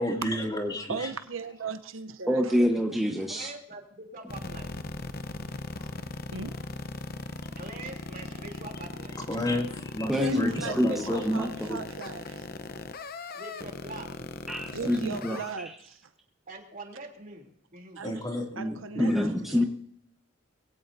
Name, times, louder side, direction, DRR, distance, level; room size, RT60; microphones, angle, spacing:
voice 1, 0.0-1.1 5.8-6.0 9.1-11.3 14.8-15.0 18.0-19.3, left 1 dB, 20° left, 1 dB, 2.5 m, -32 dB
voice 2, 0.9-2.4 6.3-6.5 10.2-12.5 14.7-15.7 18.0-18.2 18.6-19.1 19.4-19.6, right 5 dB, 85° right, 8 dB, 0.8 m, -37 dB
voice 3, 2.3-3.5 10.1-11.8 14.5-15.7 19.0-19.7, equal, ahead, 1 dB, 1.1 m, -27 dB
voice 4, 3.3-4.8 7.6-9.2 13.3-14.3 16.5-18.0, right 2 dB, 45° right, 2 dB, 3.2 m, -44 dB
sound 1, 4.3-15.5, left 3 dB, 50° left, 0.9 m, -38 dB
22.0 x 17.0 x 2.7 m, 0.66 s
head